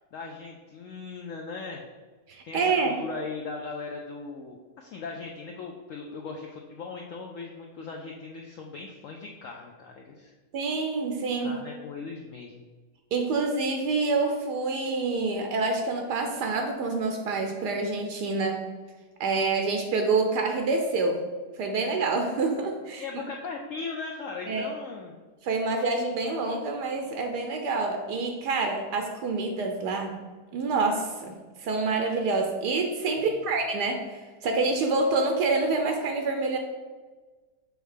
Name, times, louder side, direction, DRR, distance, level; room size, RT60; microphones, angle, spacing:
voice 1, 0.1-1.8 2.4-10.3 11.4-12.6 23.0-25.1 33.1-33.4, left 4 dB, 65° left, 1 dB, 0.8 m, -38 dB
voice 2, 2.3-3.0 10.5-11.6 13.1-18.6 19.2-21.2 21.6-23.2 24.5-24.7 25.4-30.2 30.5-36.6, right 3 dB, 80° right, 4 dB, 1.2 m, -27 dB
6.4 x 3.2 x 4.9 m, 1.3 s
omnidirectional pair, 1.8 m